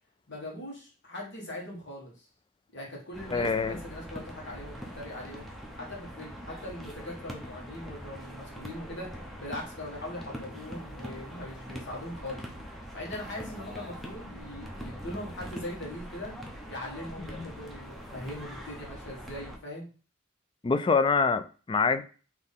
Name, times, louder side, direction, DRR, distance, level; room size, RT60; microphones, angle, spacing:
voice 1, 0.3-2.3 2.7-5.5 5.8-9.1 9.4-12.4 12.9-16.3 16.7-19.9, left 1 dB, 60° left, 1.6 m, -41 dB
sound 1, 3.1-19.6, equal, ahead, 0.7 m, -43 dB
voice 2, 3.3-3.8 17.3-17.5 20.6-22.0, left 4 dB, 25° left, 0.3 m, -25 dB
4.0 x 3.0 x 3.6 m
head